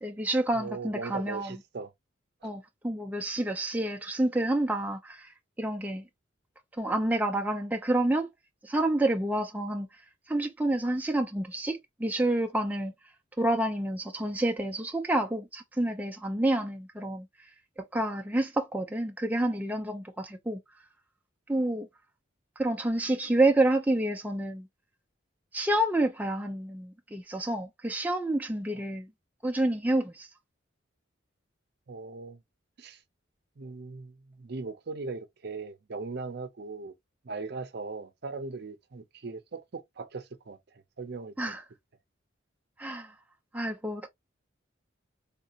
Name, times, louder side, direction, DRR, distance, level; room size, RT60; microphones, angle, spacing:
voice 1, 0.0-1.6 2.4-5.3 5.6-6.0 6.8-8.3 8.6-9.9 10.3-12.9 13.4-17.3 17.8-20.6 21.5-21.9 22.6-24.7 25.5-29.1 29.4-30.3 41.4-41.6 42.8-43.1 43.5-44.1, right 1 dB, 10° right, 0.4 m, -28 dB
voice 2, 0.5-1.9 2.4-2.5 28.7-28.8 31.9-32.4 32.8-33.0 33.6-36.9 37.2-41.3, right 3 dB, 55° right, 0.6 m, -39 dB
3.6 x 2.7 x 2.4 m
head